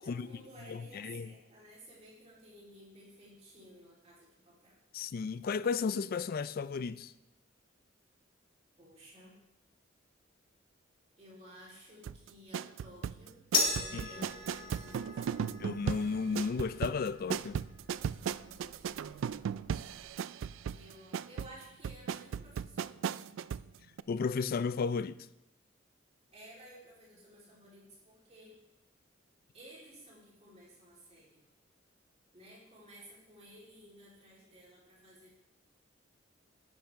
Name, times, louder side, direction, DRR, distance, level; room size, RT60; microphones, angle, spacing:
voice 1, 0.0-4.8 8.8-9.3 11.2-15.5 18.4-19.4 20.6-23.0 26.3-28.6 29.5-31.4 32.3-35.4, right 1 dB, 35° right, 3.6 m, -55 dB
voice 2, 0.7-1.3 4.9-7.1 13.9-14.3 15.6-17.6 24.1-25.3, left 5 dB, 50° left, 0.4 m, -34 dB
sound 1, 12.0-23.7 24.0-24.1, right 8 dB, 85° right, 0.3 m, -37 dB
sound 2, 13.5-20.1, left 4 dB, 75° left, 2.8 m, -39 dB
10.5 x 10.5 x 3.6 m
head